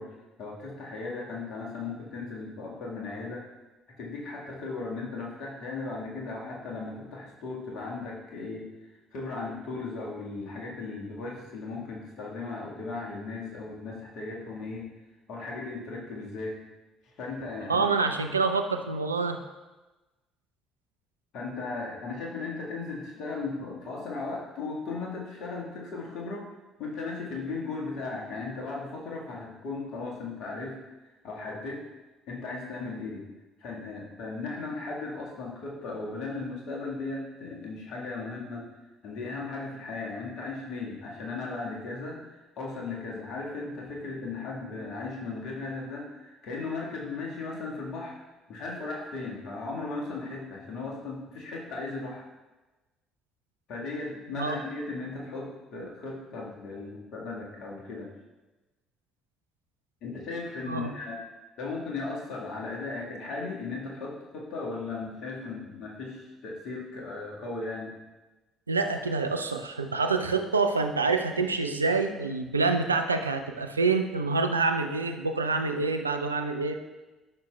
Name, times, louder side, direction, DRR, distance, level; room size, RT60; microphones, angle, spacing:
voice 1, 0.0-3.4 4.0-8.7 9.1-14.9 15.3-16.6 17.2-17.9 21.3-26.5 26.8-30.8 31.2-31.8 32.3-33.2 33.6-38.7 39.0-48.2 48.5-52.3 53.7-58.1 60.0-61.2 61.6-67.9, left 3 dB, 55° left, -2 dB, 1.6 m, -36 dB
voice 2, 17.7-19.4 54.3-54.6 60.7-60.9 68.7-76.7, right 4 dB, 90° right, 6 dB, 0.3 m, -27 dB
11.5 x 6.0 x 2.3 m, 1.1 s
figure-of-eight pair, 50°, 0 cm